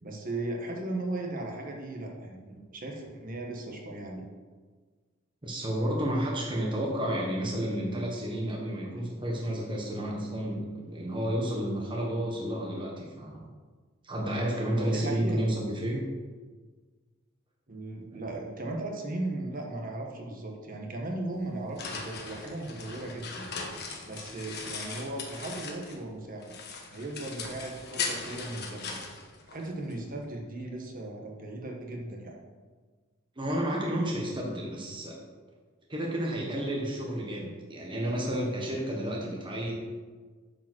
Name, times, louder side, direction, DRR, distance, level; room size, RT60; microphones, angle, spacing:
voice 1, 0.0-4.2 14.7-15.5 17.7-23.5 24.0-26.5 26.9-29.0 29.5-32.4, right 2 dB, 45° right, 0 dB, 1.4 m, -37 dB
voice 2, 5.4-13.4 14.0-16.0 18.1-18.2 33.4-35.2 35.9-39.8, right 1 dB, 25° right, -2 dB, 1.3 m, -31 dB
sound 1, 21.3-26.1 26.4-30.0, left 4 dB, 55° left, 1.4 m, -39 dB
9.0 x 5.3 x 6.2 m, 1.4 s
head